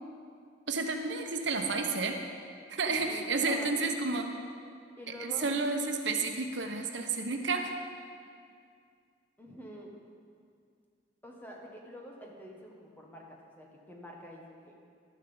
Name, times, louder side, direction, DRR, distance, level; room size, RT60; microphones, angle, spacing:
voice 1, 0.7-2.2 2.7-4.3 5.2-7.7, right 3 dB, 70° right, 4 dB, 1.0 m, -31 dB
voice 2, 2.9-3.7 5.0-5.5 9.4-10.0 11.2-14.8, equal, 10° left, -1 dB, 1.5 m, -47 dB
12.5 x 7.4 x 7.1 m, 2.2 s
head